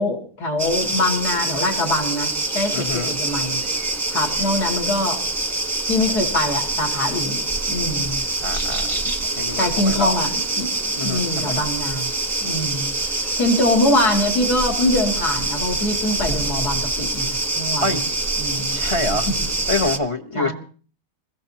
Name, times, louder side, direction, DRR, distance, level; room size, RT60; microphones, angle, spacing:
voice 1, 0.0-3.6 4.1-5.2 5.9-7.4 7.7-8.2 9.6-10.3 10.6-12.1 12.4-12.9 13.4-18.0 18.4-18.8 19.3-19.4 20.4-20.5, left 1 dB, 65° left, 1 dB, 3.2 m, -23 dB
sound 1, 0.6-20.0, right 2 dB, 10° right, 0.9 m, -25 dB
voice 2, 2.7-3.1 8.4-9.0 9.4-10.2 10.9-11.6 17.8-18.0 18.7-19.3 19.7-20.5, left 2 dB, 25° left, 6 dB, 0.8 m, -26 dB
27.0 x 15.5 x 2.9 m, 0.41 s
omnidirectional pair, 1.8 m